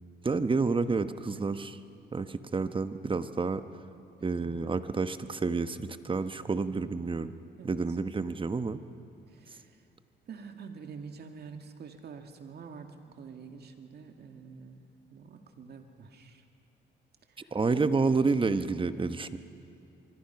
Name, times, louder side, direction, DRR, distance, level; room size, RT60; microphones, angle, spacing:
voice 1, 0.2-1.8 2.1-3.6 4.2-7.3 7.6-8.8 17.5-19.4, right 4 dB, 25° right, 11 dB, 1.0 m, -29 dB
voice 2, 4.3-4.8 7.6-7.8 9.3-9.8 10.3-16.4 17.3-18.1, right 6 dB, 55° right, 5 dB, 2.2 m, -46 dB
25.0 x 23.5 x 5.9 m, 2.8 s
cardioid pair, 90°, 20 cm